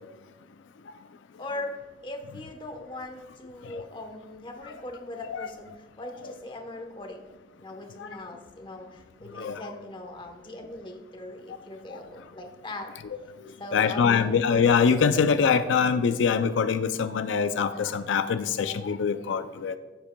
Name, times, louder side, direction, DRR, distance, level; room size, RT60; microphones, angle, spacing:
voice 1, 1.4-1.8 2.0-7.2 7.6-12.9 13.6-14.4, left 1 dB, 25° left, 4 dB, 1.0 m, -40 dB
voice 2, 13.7-19.8, left 6 dB, 85° left, 10 dB, 0.4 m, -24 dB
15.0 x 7.3 x 2.2 m, 1.2 s
head